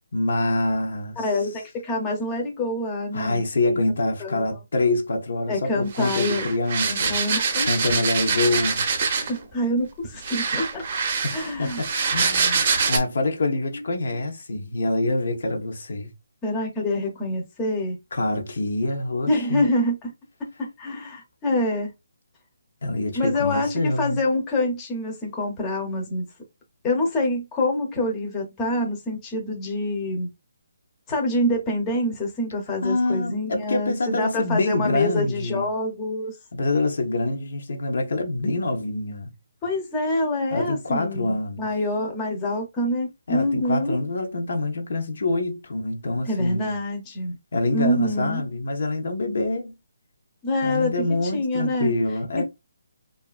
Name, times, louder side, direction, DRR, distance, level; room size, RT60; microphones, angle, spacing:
voice 1, 0.1-1.2 3.1-7.2 7.6-8.9 11.2-16.1 18.1-19.6 22.8-24.2 32.8-35.7 36.5-39.3 40.5-41.7 43.3-46.7 47.5-49.8 50.6-52.4, left 2 dB, 65° left, 0.7 m, -26 dB
voice 2, 1.2-3.4 4.2-4.5 5.5-6.5 6.8-8.0 9.2-10.8 11.3-11.8 16.4-18.0 19.3-20.1 20.6-21.9 23.1-26.2 26.8-30.3 31.1-36.3 39.6-44.0 46.3-47.4 47.7-48.4 50.4-51.1 51.3-51.9 52.3-52.4, left 1 dB, 20° left, 0.7 m, -26 dB
sound 1, 5.9-9.4 10.2-13.0, right 5 dB, 45° right, 0.6 m, -24 dB
2.7 x 2.4 x 2.3 m
hypercardioid pair, 160°, 0 cm